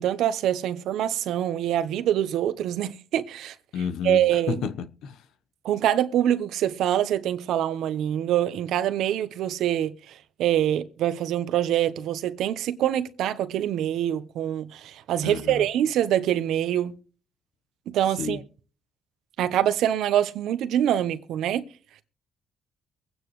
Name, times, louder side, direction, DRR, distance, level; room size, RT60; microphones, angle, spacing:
voice 1, 0.0-3.5 4.0-4.6 5.6-17.0 17.9-18.4 19.4-21.7, right 11 dB, 80° right, 0.9 m, -25 dB
voice 2, 3.7-5.2 15.2-15.7 18.2-18.4, left 6 dB, 85° left, 1.0 m, -31 dB
23.5 x 9.2 x 3.2 m
cardioid pair, 90°, 0 cm